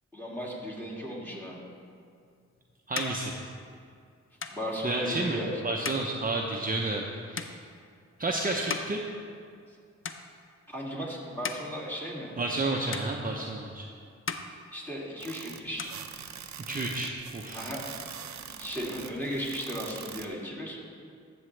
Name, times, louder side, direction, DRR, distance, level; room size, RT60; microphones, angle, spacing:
voice 1, 0.1-1.6 4.5-5.5 10.7-12.3 14.7-15.9 17.5-17.8 18.6-20.8, equal, 5° left, -3 dB, 2.4 m, -35 dB
sound 1, 2.1-9.8 10.0-10.7 11.2-12.6 12.9-13.8 14.1-15.3 15.6-16.7, left 5 dB, 45° left, 0.6 m, -41 dB
voice 2, 2.9-3.3 4.8-7.6 8.2-9.0 12.4-13.9 16.7-17.7, right 2 dB, 30° right, 0 dB, 0.7 m, -31 dB
sound 2, 15.2-20.3, right 8 dB, 70° right, 0.6 m, -43 dB
12.5 x 7.2 x 3.3 m, 2.3 s
cardioid pair, 65°, 29 cm